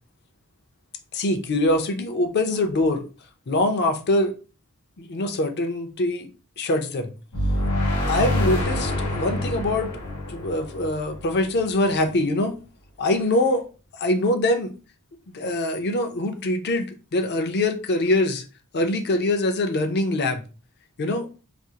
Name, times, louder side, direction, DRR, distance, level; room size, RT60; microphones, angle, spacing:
voice 1, 1.1-3.0 3.5-4.3 5.0-6.3 6.6-7.1 8.1-9.9 10.3-12.5 13.0-13.7 13.9-14.7 15.3-16.9 17.1-18.4 18.7-20.4 21.0-21.3, left 1 dB, 50° left, 0.5 m, -23 dB
sound 1, 7.3-11.9, left 1 dB, 85° left, 1.0 m, -26 dB
2.5 x 2.4 x 2.8 m
head